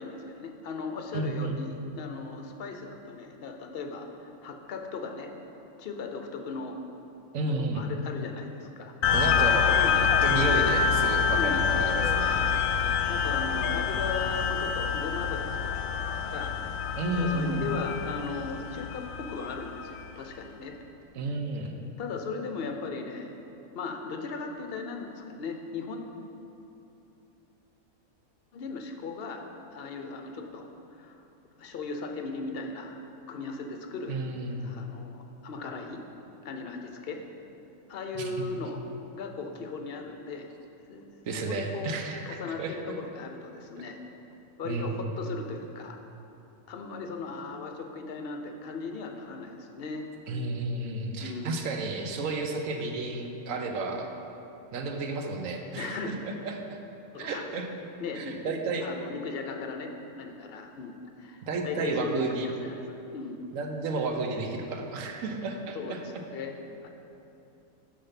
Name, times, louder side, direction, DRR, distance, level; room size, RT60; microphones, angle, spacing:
voice 1, 0.0-5.3 5.8-6.8 7.4-8.9 9.5-10.6 11.3-11.7 12.3-12.6 13.1-16.9 17.2-20.7 22.0-23.4 23.7-26.0 28.5-29.4 29.7-31.2 31.6-33.0 33.3-34.2 34.6-36.0 36.4-37.2 37.9-38.8 39.1-40.5 40.9-41.0 41.5-41.9 42.3-44.0 44.6-46.0 46.7-50.1 51.2-51.5 55.8-56.1 57.1-57.5 58.0-58.4 58.8-62.8 63.1-63.4 65.7-66.5 66.8-66.9, left 4 dB, 55° left, 4 dB, 0.8 m, -37 dB
voice 2, 1.1-1.6 7.3-7.8 9.1-9.7 10.2-12.4 17.0-17.7 21.2-21.8 34.1-34.8 38.1-38.5 41.2-42.8 44.6-45.1 50.3-54.1 54.7-56.8 57.2-57.7 58.1-58.9 61.4-62.5 63.5-66.0, right 3 dB, 75° right, 4 dB, 1.1 m, -32 dB
sound 1, 9.0-19.9, left 6 dB, 75° left, 1.0 m, -26 dB
6.7 x 5.6 x 5.7 m, 2.9 s
omnidirectional pair, 1.4 m